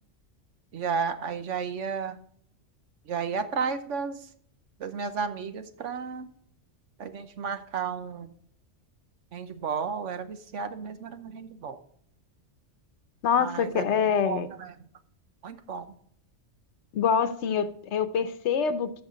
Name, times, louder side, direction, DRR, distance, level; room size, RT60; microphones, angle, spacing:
voice 1, 0.7-2.2 3.1-4.2 4.8-6.3 7.0-8.3 9.3-11.8 13.4-13.8 14.2-14.7 15.4-15.9, right 6 dB, 85° right, 1.2 m, -33 dB
voice 2, 13.2-14.5 16.9-19.0, left 7 dB, 70° left, 1.1 m, -25 dB
13.5 x 5.7 x 3.8 m
omnidirectional pair, 1.2 m